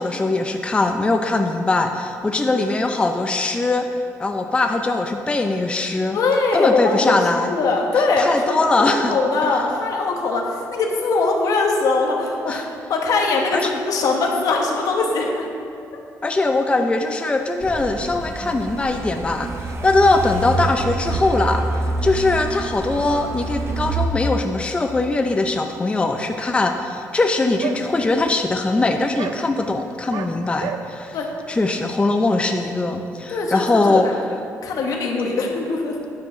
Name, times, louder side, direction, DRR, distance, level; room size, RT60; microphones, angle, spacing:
voice 1, 0.0-3.9 4.2-6.2 6.5-7.5 8.0-9.2 12.5-12.7 13.5-13.7 16.2-19.5 19.8-21.6 22.0-31.2 31.5-34.1, left 2 dB, 20° left, 5 dB, 0.5 m, -21 dB
voice 2, 6.1-7.2 7.4-15.5 31.1-31.3 33.3-34.1 34.6-35.9, left 3 dB, 70° left, 1 dB, 1.3 m, -21 dB
Truck, 17.6-24.1, right 3 dB, 50° right, 0.7 m, -27 dB
sound 1, 27.6-27.8 28.3-28.4 28.7-28.8 29.1-29.3 30.1-30.3 30.6-30.8, right 10 dB, 85° right, 0.5 m, -29 dB
9.5 x 4.4 x 6.0 m, 2.6 s
cardioid pair, 110°, 6 cm